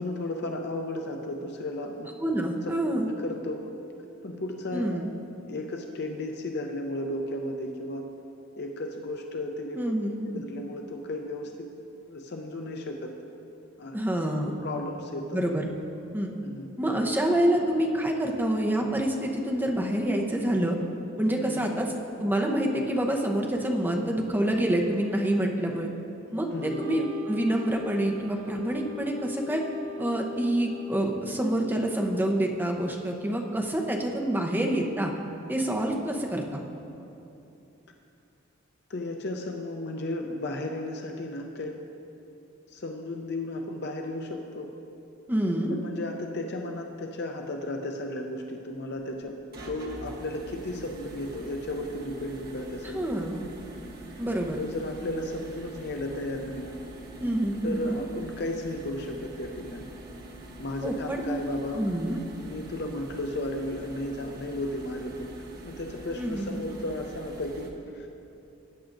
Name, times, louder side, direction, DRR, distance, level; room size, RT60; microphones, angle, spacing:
voice 1, 0.0-2.1 2.5-3.6 4.2-5.0 5.5-8.1 8.6-9.9 10.2-11.7 12.1-13.1 13.8-14.0 14.6-15.4 16.4-16.7 21.5-21.9 26.5-26.8 38.9-41.8 42.7-44.7 45.7-49.4 49.7-53.2 54.5-56.8 57.6-59.9 60.6-62.0 62.3-65.4 65.7-68.2, left 1 dB, 55° left, 3 dB, 0.6 m, -34 dB
voice 2, 2.2-3.1 4.7-5.1 9.7-10.2 13.9-14.6 15.3-15.6 16.1-16.3 16.8-20.8 21.2-21.9 22.2-25.9 26.3-29.6 30.0-35.1 35.5-36.6 45.3-45.8 52.9-53.4 54.2-54.6 57.2-58.0 60.8-61.4 61.7-62.2 66.2-66.6, right 1 dB, 10° right, 0 dB, 0.8 m, -27 dB
Wind instrument woodwind instrument, 26.6-31.7, left 5 dB, 85° right, 0.6 m, -41 dB
sound 1, 48.7-67.7, right 1 dB, 50° right, 1.1 m, -44 dB
17.0 x 8.6 x 2.6 m, 2.9 s
head